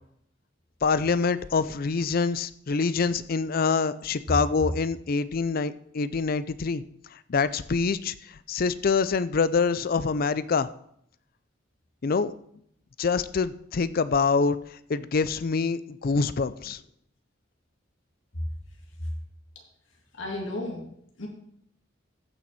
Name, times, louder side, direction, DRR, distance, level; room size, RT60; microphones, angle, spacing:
voice 1, 0.8-6.8 7.3-8.1 8.5-10.7 12.0-12.3 13.0-14.6 14.9-16.8, left 4 dB, 50° left, 15 dB, 0.5 m, -25 dB
voice 2, 20.2-21.3, left 1 dB, 90° left, 0 dB, 2.6 m, -34 dB
14.5 x 6.1 x 4.2 m, 0.71 s
head